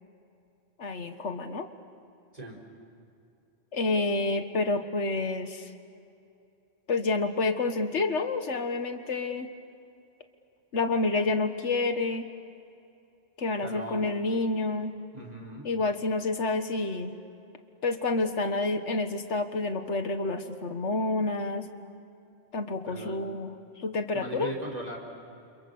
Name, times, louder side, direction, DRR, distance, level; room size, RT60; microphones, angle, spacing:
voice 1, 0.8-1.7 3.7-5.7 6.9-9.5 10.7-12.3 13.4-14.9 15.6-17.2 17.8-21.7 22.5-23.5 23.8-24.5, left 3 dB, 85° left, 7 dB, 1.8 m, -29 dB
voice 2, 13.6-14.1 15.1-15.7 22.8-23.2 24.1-25.0, right 1 dB, 35° right, 1 dB, 4.6 m, -38 dB
30.0 x 27.5 x 7.1 m, 2.7 s
omnidirectional pair, 1.2 m